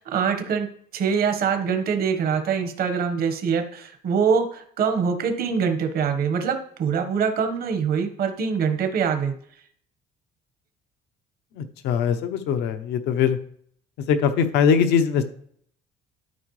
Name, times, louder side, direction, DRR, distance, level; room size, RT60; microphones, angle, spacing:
voice 1, 0.0-9.3, right 6 dB, 65° right, 7 dB, 1.3 m, -24 dB
voice 2, 11.5-13.4 14.1-15.2, left 7 dB, 85° left, 8 dB, 0.8 m, -21 dB
12.5 x 4.4 x 3.2 m, 0.63 s
cardioid pair, 110°, 17 cm